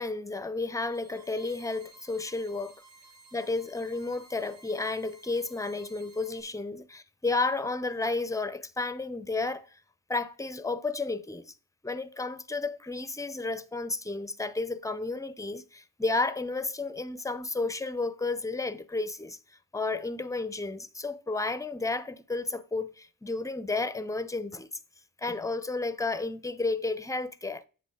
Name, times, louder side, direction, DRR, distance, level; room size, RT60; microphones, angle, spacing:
voice 1, 0.0-2.8 3.3-6.8 7.2-9.8 10.1-11.5 11.8-19.4 19.7-24.7 25.2-27.6, left 3 dB, 10° left, 0.5 m, -32 dB
sound 1, 0.7-6.4, right 3 dB, 45° right, 3.0 m, -56 dB
8.2 x 6.0 x 3.6 m
cardioid pair, 85°, 38 cm